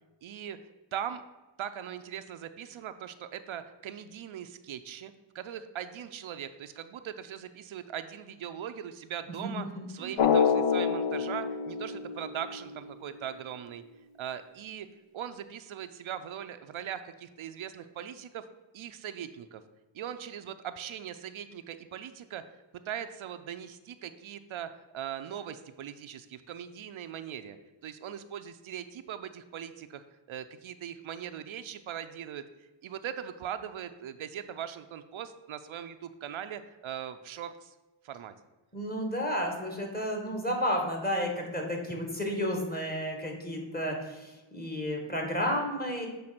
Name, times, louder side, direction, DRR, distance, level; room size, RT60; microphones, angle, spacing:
voice 1, 0.2-0.6 0.9-1.2 1.6-13.8 14.2-14.9 15.1-18.4 18.7-19.6 19.9-22.4 22.9-27.6 27.8-37.7 38.0-38.3, right 9 dB, 75° right, 10 dB, 0.6 m, -40 dB
voice 2, 9.8-10.1 38.7-46.1, equal, 20° left, 1 dB, 1.7 m, -32 dB
Drum, 10.2-12.8, left 6 dB, 80° left, 0.7 m, -27 dB
7.8 x 3.4 x 5.9 m, 1.1 s
cardioid pair, 65°, 48 cm